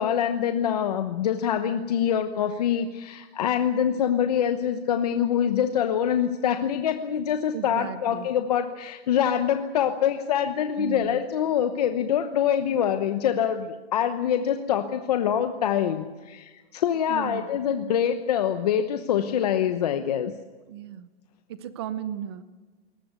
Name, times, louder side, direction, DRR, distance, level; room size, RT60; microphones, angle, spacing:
voice 1, 0.0-20.3, left 9 dB, 40° left, 8 dB, 1.0 m, -25 dB
voice 2, 7.5-8.3 10.8-11.2 17.1-17.5 17.8-18.0 20.7-21.1 21.5-22.4, right 10 dB, 25° right, 13 dB, 0.8 m, -35 dB
21.5 x 19.5 x 8.1 m, 1.3 s
hypercardioid pair, 180°, 31 cm